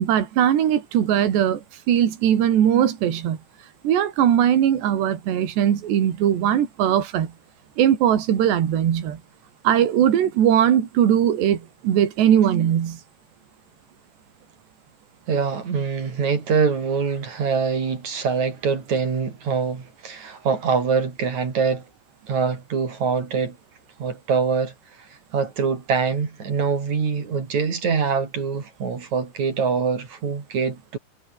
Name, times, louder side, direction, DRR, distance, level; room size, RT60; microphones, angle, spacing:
voice 1, 0.0-3.4 3.8-7.3 7.8-9.2 9.6-13.0, right 10 dB, 70° right, 4.8 m, -20 dB
voice 2, 15.3-21.9 22.3-23.6 24.0-31.0, right 5 dB, 45° right, 4.5 m, -24 dB
omnidirectional pair, 5.1 m